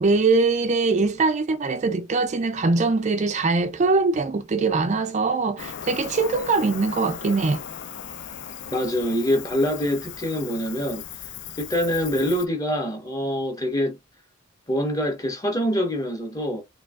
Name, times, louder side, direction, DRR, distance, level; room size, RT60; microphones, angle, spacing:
voice 1, 0.0-7.6, right 3 dB, 35° right, 0.4 m, -22 dB
Cricket, 5.6-12.5, left 8 dB, 60° left, 0.5 m, -37 dB
voice 2, 8.7-11.0 11.6-14.0 14.7-16.6, equal, 20° left, 1.4 m, -25 dB
4.5 x 3.2 x 2.3 m
head